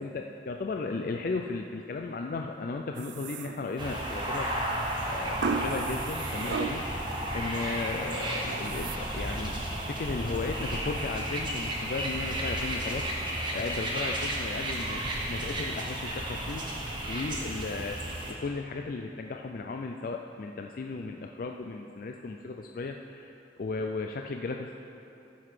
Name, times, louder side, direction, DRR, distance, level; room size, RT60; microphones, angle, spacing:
voice 1, 0.0-7.0 7.3-9.6 9.9-13.1 13.3-16.7 17.1-24.7, left 3 dB, 50° left, 3 dB, 0.4 m, -35 dB
sound 1, 3.0-4.0 5.4-7.1 7.5-8.0 8.5-9.0, right 5 dB, 80° right, 0.4 m, -35 dB
sound 2, 3.8-18.3, right 1 dB, 25° right, 1.2 m, -33 dB
14.0 x 5.8 x 4.9 m, 2.9 s
head